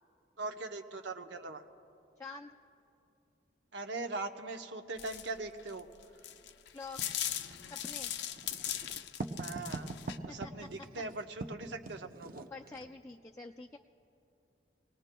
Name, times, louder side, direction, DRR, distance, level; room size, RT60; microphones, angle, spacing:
voice 1, 0.4-1.6 3.7-5.9 9.4-9.9 10.3-12.4, right 3 dB, 85° right, 6 dB, 0.7 m, -41 dB
voice 2, 2.2-2.6 6.7-7.0 7.7-8.1 10.0-10.5 12.5-13.8, left 3 dB, 15° left, 2 dB, 0.3 m, -47 dB
sound 1, 5.0-10.2, left 10 dB, 80° left, 0.5 m, -39 dB
Writing, 7.0-12.9, right 2 dB, 50° right, 0.6 m, -44 dB
27.0 x 19.0 x 2.2 m, 2.7 s
head